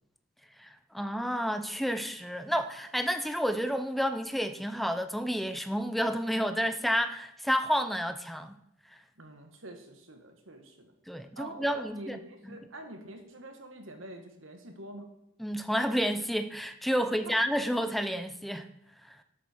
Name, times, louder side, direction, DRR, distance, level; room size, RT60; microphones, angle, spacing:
voice 1, 0.6-8.6 11.1-12.2 12.5-12.6 15.4-18.7 19.1-19.2, equal, ahead, 9 dB, 0.7 m, -30 dB
voice 2, 9.2-10.9 11.4-15.1 17.1-17.3, right 1 dB, 85° right, 5 dB, 2.0 m, -46 dB
12.5 x 8.5 x 4.7 m, 0.83 s
head